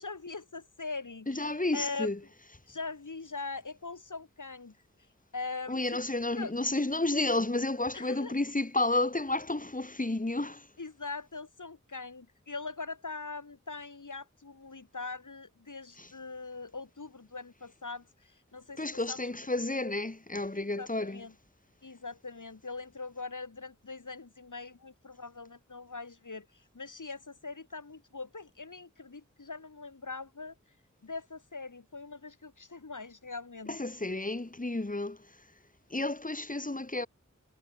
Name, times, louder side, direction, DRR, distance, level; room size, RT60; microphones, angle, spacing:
voice 1, 0.0-1.5 1.7-2.1 2.7-4.8 5.3-6.0 6.3-6.5 7.9-8.3 10.8-19.2 20.5-21.3 21.8-30.5 31.0-33.8, left 3 dB, 90° left, 2.2 m, -42 dB
voice 2, 1.3-2.2 5.7-10.7 16.0-16.1 18.8-21.2 33.7-35.4 35.9-37.1, left 2 dB, 25° left, 1.6 m, -31 dB
wide cardioid pair, 45°, 30 cm